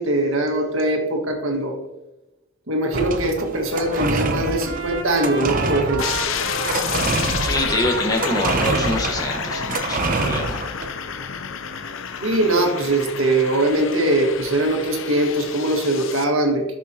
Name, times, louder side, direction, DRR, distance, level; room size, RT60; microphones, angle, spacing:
voice 1, 0.0-1.8 2.7-6.0 12.2-16.6, right 1 dB, 75° right, 2 dB, 1.7 m, -21 dB
sound 1, 2.9-10.9, right 3 dB, 40° right, 0.7 m, -26 dB
Trumpet, 3.7-10.6, right 3 dB, 55° right, 1.2 m, -34 dB
sound 2, 6.0-16.2, left 6 dB, 65° left, 0.6 m, -30 dB
voice 2, 7.4-10.6, left 1 dB, 20° left, 2 dB, 1.2 m, -25 dB
13.0 x 6.2 x 2.8 m, 0.98 s
head